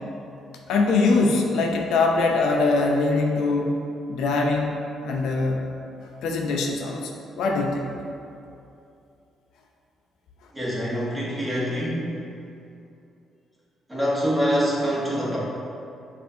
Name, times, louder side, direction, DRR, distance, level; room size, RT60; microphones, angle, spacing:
voice 1, 0.7-3.8 4.1-4.8 5.0-5.6 6.2-7.9, left 3 dB, 85° left, 1 dB, 0.4 m, -22 dB
voice 2, 10.5-12.2 13.9-15.4, equal, 10° right, -7 dB, 1.2 m, -25 dB
6.2 x 2.5 x 2.7 m, 2.7 s
cardioid pair, 90°, 0 cm